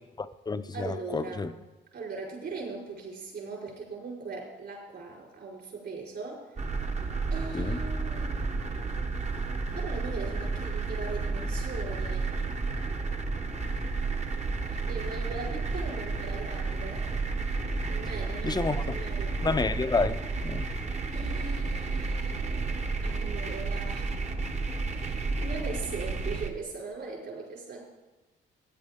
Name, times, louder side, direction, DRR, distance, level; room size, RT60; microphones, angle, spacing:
voice 1, 0.2-1.5 7.5-7.8 18.4-19.0 19.4-20.7, left 4 dB, 20° left, 0.6 m, -30 dB
voice 2, 0.7-1.5 1.9-6.5 7.3-8.8 9.7-12.3 14.7-17.1 17.9-19.3 21.1-24.1 24.9-27.8, right 4 dB, 55° right, 4.8 m, -40 dB
sound 1, 6.6-26.5, right 3 dB, 35° right, 1.2 m, -31 dB
16.0 x 9.5 x 3.7 m
cardioid pair, 90°, 20 cm